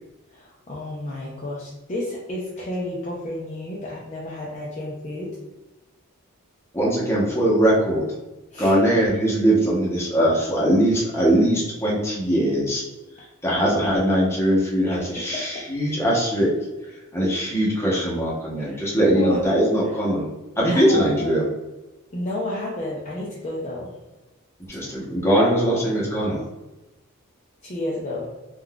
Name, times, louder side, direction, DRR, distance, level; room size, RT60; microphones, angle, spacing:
voice 1, 0.3-5.3 8.5-8.8 14.9-15.6 18.6-18.9 19.1-19.6 20.7-21.4 22.1-24.0 24.8-24.9 27.6-28.3, left 1 dB, 30° left, -5 dB, 0.5 m, -31 dB
voice 2, 6.7-8.1 8.6-12.8 13.4-16.5 17.1-20.3 20.6-21.4 24.7-26.4, right 1 dB, 10° left, -5 dB, 0.8 m, -21 dB
3.7 x 2.4 x 2.2 m, 1.1 s
head